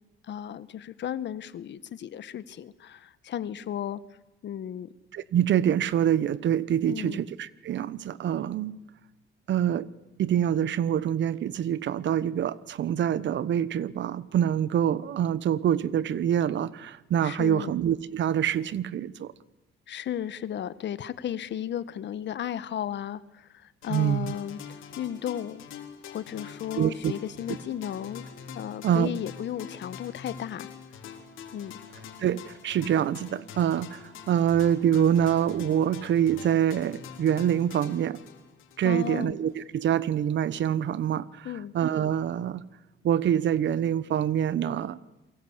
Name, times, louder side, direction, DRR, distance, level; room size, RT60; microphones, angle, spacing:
voice 1, 0.3-4.0 4.4-4.9 6.9-7.2 17.2-17.7 19.9-24.6 25.0-25.6 26.1-28.2 28.5-30.7 31.5-31.8 38.8-39.4 41.4-41.7, left 10 dB, 65° left, 1.3 m, -34 dB
voice 2, 5.1-8.8 9.5-9.9 10.2-19.3 23.9-24.3 26.7-27.1 28.8-29.1 32.2-38.2 38.8-42.6 43.0-45.0, right 10 dB, 65° right, 1.1 m, -25 dB
sound 1, 23.8-39.2, left 7 dB, 85° left, 4.0 m, -45 dB
28.0 x 23.5 x 8.1 m
cardioid pair, 90°, 20 cm